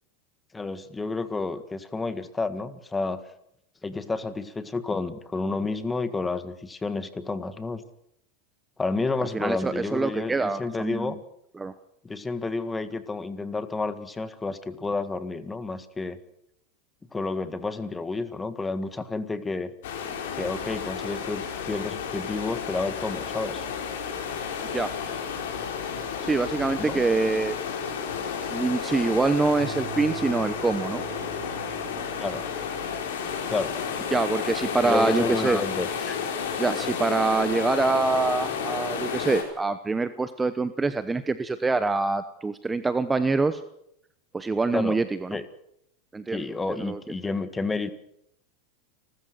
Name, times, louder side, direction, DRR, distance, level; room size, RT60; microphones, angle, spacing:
voice 1, 0.5-3.2 3.8-7.8 8.8-11.2 12.0-16.2 17.1-19.7 20.4-21.4 21.7-23.6 26.8-27.0 32.2-32.4 33.5-33.8 34.8-36.2 44.7-45.0 45.3-45.4 46.3-47.9, left 3 dB, 15° left, 11 dB, 1.8 m, -30 dB
voice 2, 9.3-11.1 11.6-11.7 24.7-24.9 26.2-27.6 28.5-31.0 34.1-35.6 36.6-43.6 44.3-45.4 46.1-47.0, right 3 dB, 15° right, 12 dB, 1.0 m, -25 dB
sound 1, 19.8-39.4, left 7 dB, 75° left, 4.8 m, -32 dB
sound 2, 29.6-33.1, right 9 dB, 40° right, 4.5 m, -40 dB
29.5 x 13.5 x 6.5 m, 0.76 s
hypercardioid pair, 110°, 0 cm